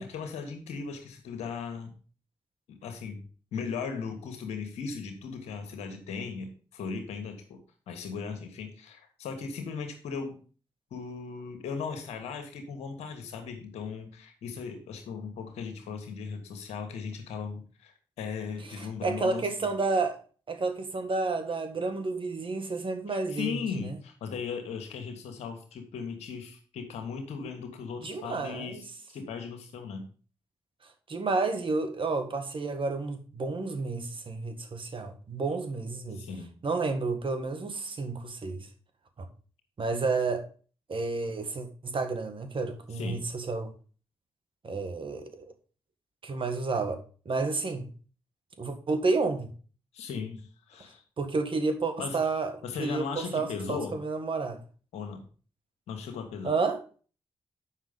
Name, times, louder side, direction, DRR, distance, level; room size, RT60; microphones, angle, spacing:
voice 1, 0.1-1.9 2.7-3.2 3.5-7.6 7.9-10.4 10.9-19.5 23.1-30.0 36.1-36.5 42.9-43.2 49.9-51.0 52.0-52.2 52.6-54.0 54.9-55.3 55.9-56.6, left 5 dB, 85° left, 1.4 m, -37 dB
voice 2, 18.8-20.2 20.5-23.9 28.0-28.8 31.1-36.2 36.6-38.7 39.8-40.4 40.9-43.7 44.6-45.3 46.2-47.9 48.6-49.5 51.2-52.5 52.8-54.6 56.4-56.8, right 3 dB, 55° right, 1.7 m, -30 dB
7.4 x 5.8 x 5.1 m
supercardioid pair, 40°, 11 cm